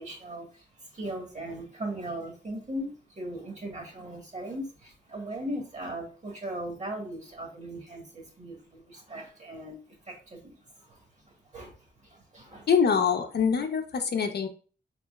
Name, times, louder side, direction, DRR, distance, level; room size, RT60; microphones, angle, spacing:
voice 1, 0.0-12.7, right 1 dB, 40° right, 1 dB, 1.5 m, -39 dB
voice 2, 12.7-14.5, left 6 dB, 65° left, 5 dB, 0.7 m, -24 dB
4.1 x 3.7 x 2.3 m, 0.37 s
wide cardioid pair, 110°, 18 cm